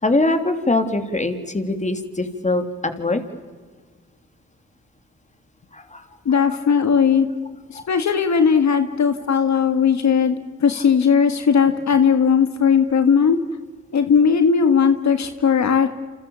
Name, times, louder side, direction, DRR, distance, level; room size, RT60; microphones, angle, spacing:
voice 1, 0.0-3.2 5.7-6.4 7.7-7.9 8.9-9.2 10.1-10.3 15.1-15.2, left 2 dB, 25° left, 8 dB, 3.2 m, -23 dB
voice 2, 6.3-7.3 7.7-13.4 13.9-15.9, left 6 dB, 65° left, 8 dB, 1.8 m, -17 dB
29.0 x 28.5 x 7.2 m, 1.4 s
cardioid pair, 75°, 30 cm